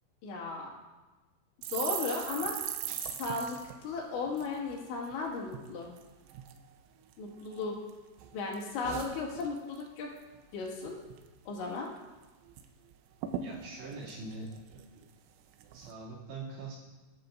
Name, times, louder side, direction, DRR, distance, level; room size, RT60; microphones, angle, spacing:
voice 1, 0.2-0.7 1.7-2.5 3.0-5.9 7.2-7.8 8.3-10.1 10.5-11.0 11.5-11.9, left 4 dB, 75° left, -3 dB, 4.2 m, -35 dB
sound 1, 1.6-5.2 5.5-5.7 6.0-6.6 7.1-7.9 8.2-9.9 10.2-10.4 10.7-11.2 11.6-11.7 12.0-12.7 12.9-13.0 13.2-15.1 15.6-15.9, right 10 dB, 90° right, 3.1 m, -40 dB
voice 2, 13.4-14.5 15.7-16.8, right 3 dB, 65° right, -6 dB, 4.6 m, -42 dB
20.5 x 11.0 x 2.6 m, 1.2 s
omnidirectional pair, 5.5 m